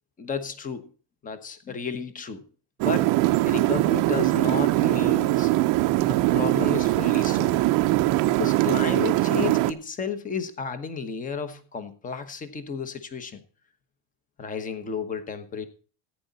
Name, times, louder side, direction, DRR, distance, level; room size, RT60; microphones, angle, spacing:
voice 1, 0.2-0.9 1.2-2.4 2.8-3.1 3.5-5.5 6.1-7.6 8.3-13.4 14.4-15.7, left 6 dB, 15° left, 11 dB, 1.1 m, -32 dB
sound 1, 2.8-9.7, right 17 dB, 40° right, 0.7 m, -22 dB
14.5 x 9.5 x 4.1 m, 0.38 s
supercardioid pair, 150°, 48 cm